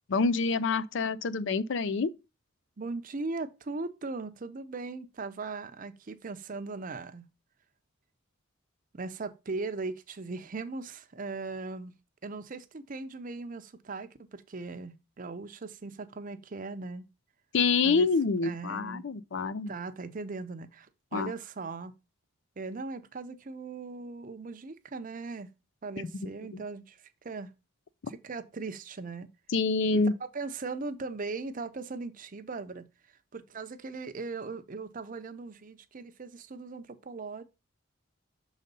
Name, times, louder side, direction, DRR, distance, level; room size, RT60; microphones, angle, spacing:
voice 1, 0.1-2.1 17.5-19.7 21.1-21.3 26.1-26.3 26.5-26.6 29.5-30.1, left 4 dB, 60° left, 0.5 m, -27 dB
voice 2, 2.8-7.2 8.9-11.9 12.2-17.1 17.8-18.1 18.4-19.1 19.7-21.9 22.6-25.5 25.8-27.5 28.1-29.3 29.9-30.0 30.3-32.9 33.3-37.4, right 3 dB, 40° right, 0.6 m, -39 dB
6.3 x 4.0 x 5.2 m
head